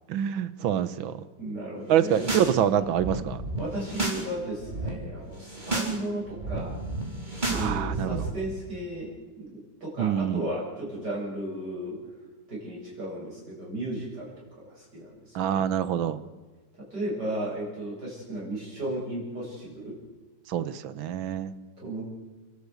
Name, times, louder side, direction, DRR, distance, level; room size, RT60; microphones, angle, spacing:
voice 1, 0.1-1.2 1.9-3.4 7.5-8.2 10.0-10.5 15.3-16.2 20.5-21.5, right 9 dB, 90° right, 15 dB, 1.8 m, -26 dB
voice 2, 1.4-2.3 3.5-6.8 7.4-9.1 9.4-12.0 12.5-14.3 14.6-15.6 16.8-20.0 21.8-22.1, right 1 dB, 55° right, -5 dB, 8.2 m, -35 dB
sound 1, 2.0-2.5 2.8-4.2 4.5-4.9 5.4-5.9 6.2-8.3, right 2 dB, 20° right, 4.1 m, -32 dB
30.0 x 13.5 x 8.2 m, 1.3 s
omnidirectional pair, 2.1 m